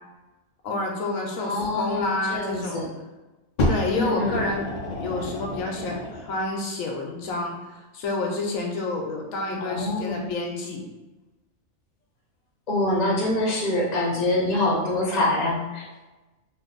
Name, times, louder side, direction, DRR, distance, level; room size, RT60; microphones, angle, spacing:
voice 1, 0.6-2.8 3.7-4.7 5.0-10.9, left 2 dB, 85° left, 1 dB, 1.0 m, -29 dB
voice 2, 1.4-2.0 2.3-2.9 3.9-4.4 9.6-10.3 12.7-15.8, left 2 dB, 35° left, -4 dB, 0.8 m, -25 dB
Fire, 3.6-6.4 7.2-7.3, left 1 dB, 60° left, 0.4 m, -29 dB
2.6 x 2.5 x 3.7 m, 1.1 s
omnidirectional pair, 1.4 m